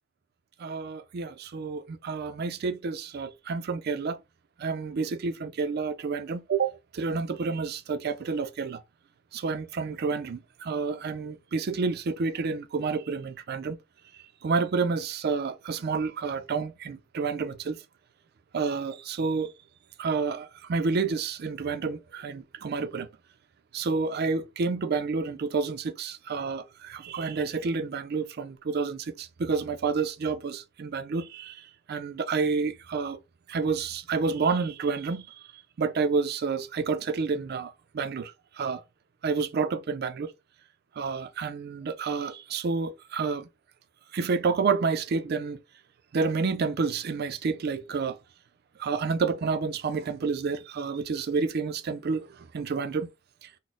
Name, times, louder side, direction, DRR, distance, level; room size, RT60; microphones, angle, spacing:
voice 1, 0.6-4.2 4.6-8.8 9.3-13.8 14.4-17.8 18.5-19.5 20.0-23.1 23.7-33.2 33.5-38.8 39.2-40.3 41.0-43.5 44.1-45.6 46.1-48.2 48.8-53.1 53.4-53.5, right 4 dB, 55° right, 0.4 m, -29 dB
4.0 x 2.0 x 3.6 m
head